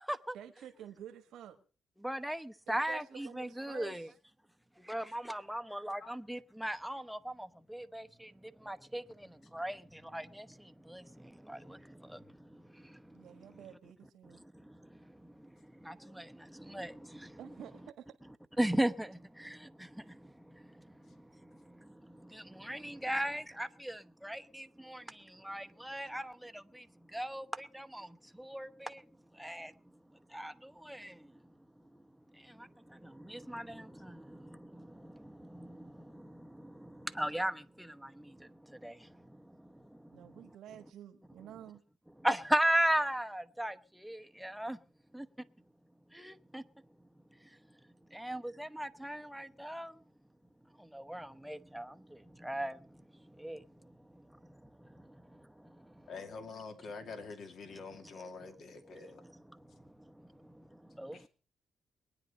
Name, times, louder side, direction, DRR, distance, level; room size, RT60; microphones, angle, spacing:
voice 1, 0.3-1.6 2.7-4.2 13.1-14.4 17.4-18.1 40.1-41.8, right 10 dB, 85° right, 1.4 m, -50 dB
voice 2, 2.0-4.1 4.8-12.2 12.5-13.2 14.6-14.9 15.2-15.5 15.8-17.4 18.6-20.2 20.5-20.6 21.2-26.9 27.1-29.0 29.4-29.7 30.3-31.2 32.4-39.1 39.4-39.5 42.2-44.8 45.1-45.3 46.1-46.6 48.1-49.9 50.8-52.8 53.4-53.6 55.3-55.4 60.2-60.7 60.9-61.3, right 1 dB, ahead, 0.9 m, -38 dB
voice 3, 56.1-59.2 61.1-61.3, left 4 dB, 65° left, 2.4 m, -46 dB
22.0 x 9.8 x 5.2 m
cardioid pair, 95°, 0 cm